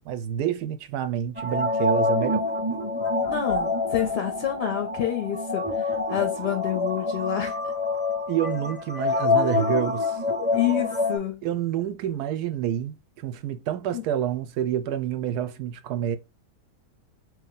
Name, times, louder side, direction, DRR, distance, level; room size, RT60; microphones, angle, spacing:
voice 1, 0.0-2.4 8.3-10.2 11.4-16.2, right 10 dB, 90° right, 1.1 m, -28 dB
sound 1, 1.4-11.2, left 3 dB, 10° right, 0.5 m, -26 dB
voice 2, 3.3-7.6 9.3-9.9 10.5-11.5 13.9-14.0, left 10 dB, 60° left, 0.6 m, -28 dB
3.1 x 2.7 x 3.8 m
omnidirectional pair, 1.6 m